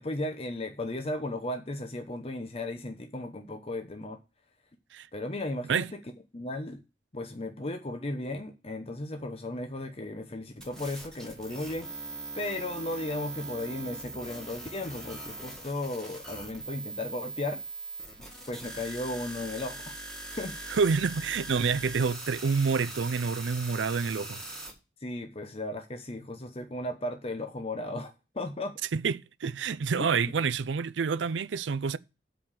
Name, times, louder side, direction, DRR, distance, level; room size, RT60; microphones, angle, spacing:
voice 1, 0.0-4.2 5.1-6.0 6.3-6.8 7.1-17.6 18.5-19.8 20.4-20.5 25.0-28.8 30.0-30.1, left 1 dB, 35° left, 0.9 m, -35 dB
sound 1, 10.6-24.7, right 2 dB, 5° left, 2.2 m, -41 dB
voice 2, 20.7-24.4 28.9-32.0, right 5 dB, 85° right, 0.5 m, -28 dB
7.8 x 5.0 x 7.2 m
head